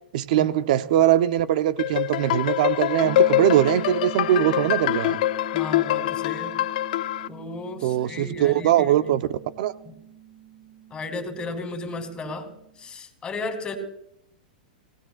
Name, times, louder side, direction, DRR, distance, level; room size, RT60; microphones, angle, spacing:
voice 1, 0.1-5.2 7.8-9.2 9.6-9.7, right 12 dB, 60° right, 0.9 m, -21 dB
sound 1, 1.8-7.3, left 15 dB, 65° left, 0.5 m, -24 dB
sound 2, 3.0-12.7, right 11 dB, 15° right, 4.2 m, -43 dB
voice 2, 5.5-6.6 7.3-9.2 9.8-10.0 10.9-12.5 12.8-13.8, left 3 dB, 20° left, 3.4 m, -34 dB
27.5 x 18.5 x 2.5 m
hypercardioid pair, 125°, 5 cm